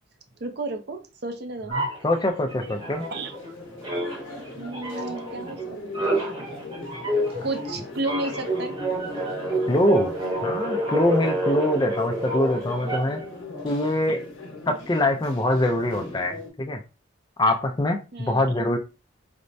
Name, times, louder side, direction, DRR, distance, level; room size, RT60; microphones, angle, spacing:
voice 1, 0.4-1.8 3.1-3.3 4.4-6.5 7.4-8.7 14.1-14.2 14.7-14.8 18.1-18.5, right 2 dB, 55° right, 0.5 m, -33 dB
voice 2, 1.7-3.1 7.3-7.5 9.7-10.1 10.4-13.2 13.6-14.2 14.7-16.8 17.4-18.8, left 1 dB, 20° left, 0.4 m, -24 dB
sound 1, 1.7-3.5 3.8-13.3, right 1 dB, 25° right, 0.9 m, -29 dB
sound 2, 2.5-16.5, left 2 dB, 75° left, 0.9 m, -39 dB
4.3 x 2.1 x 2.6 m
head